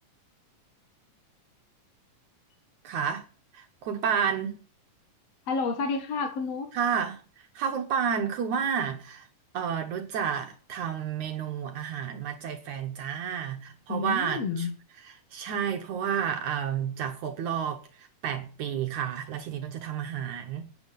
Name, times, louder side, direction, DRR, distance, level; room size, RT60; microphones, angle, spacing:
voice 1, 2.8-3.2 3.5-4.6 6.7-7.2 7.6-9.3 9.5-14.7 15.0-20.7, right 7 dB, 70° right, 4 dB, 2.6 m, -31 dB
voice 2, 5.5-6.7 13.9-14.7, left 4 dB, 55° left, 5 dB, 2.6 m, -30 dB
12.5 x 9.2 x 7.5 m, 0.39 s
omnidirectional pair, 3.7 m